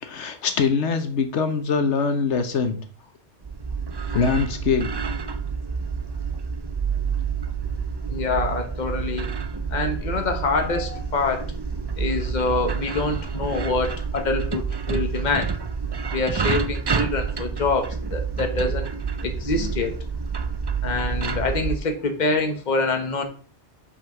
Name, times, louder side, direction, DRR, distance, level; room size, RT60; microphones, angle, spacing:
voice 1, 0.0-2.8 4.1-4.9, left 5 dB, 80° left, 8 dB, 1.2 m, -23 dB
sound 1, 3.4-21.8, right 5 dB, 40° right, 0.3 m, -28 dB
voice 2, 8.1-9.4 9.7-11.4 12.0-15.5 16.1-18.9 19.2-19.9 20.8-23.2, left 3 dB, 40° left, 6 dB, 1.2 m, -25 dB
5.7 x 5.6 x 5.8 m, 0.41 s
omnidirectional pair, 1.2 m